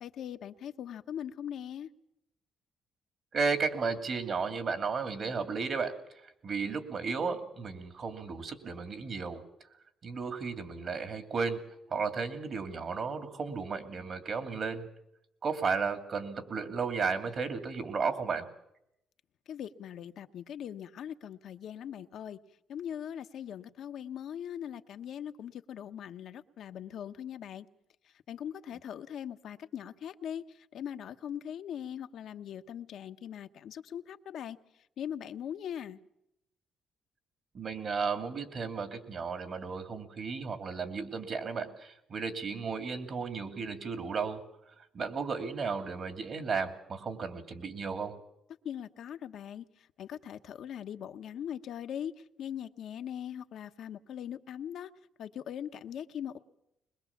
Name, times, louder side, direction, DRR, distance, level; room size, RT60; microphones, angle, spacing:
voice 1, 0.0-1.9 19.5-22.4 22.7-27.7 28.0-34.6 35.0-36.0 48.6-54.9 55.2-56.4, left 9 dB, 70° left, 8 dB, 1.0 m, -41 dB
voice 2, 3.3-9.4 10.0-11.6 11.9-14.9 15.4-18.4 37.5-44.4 44.9-48.1, right 5 dB, 50° right, 7 dB, 2.7 m, -34 dB
21.5 x 21.5 x 7.2 m, 0.82 s
cardioid pair, 90°, 0 cm